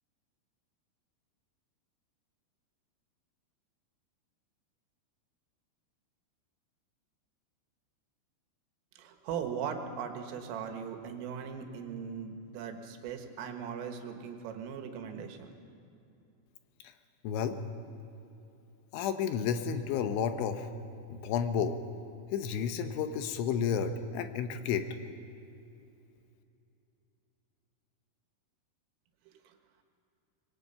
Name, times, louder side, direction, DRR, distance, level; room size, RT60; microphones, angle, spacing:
voice 1, 9.0-15.6 29.5-29.6, right 7 dB, 90° right, 5 dB, 4.1 m, -39 dB
voice 2, 17.2-17.6 18.9-20.7 21.1-21.8 22.3-24.9, left 7 dB, 80° left, 8 dB, 3.2 m, -31 dB
26.0 x 22.0 x 5.6 m, 2.7 s
omnidirectional pair, 5.7 m